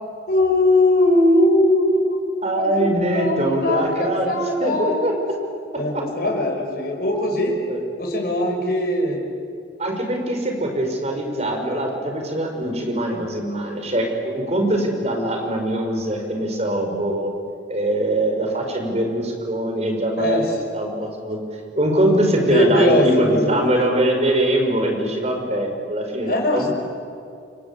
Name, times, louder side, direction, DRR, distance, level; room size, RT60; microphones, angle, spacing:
voice 1, 0.3-2.2 2.5-2.9 3.1-5.1 5.8-7.6 8.0-9.2 20.2-20.4 22.4-23.7 26.3-26.7, left 1 dB, 55° left, 1 dB, 6.0 m, -20 dB
voice 2, 2.4-4.3 4.6-5.1 5.9-6.0 7.7-7.8 9.8-17.3 17.7-20.4 20.7-21.4 21.8-26.7, right 1 dB, 35° right, 3 dB, 5.2 m, -22 dB
29.0 x 24.0 x 8.4 m, 2.4 s
head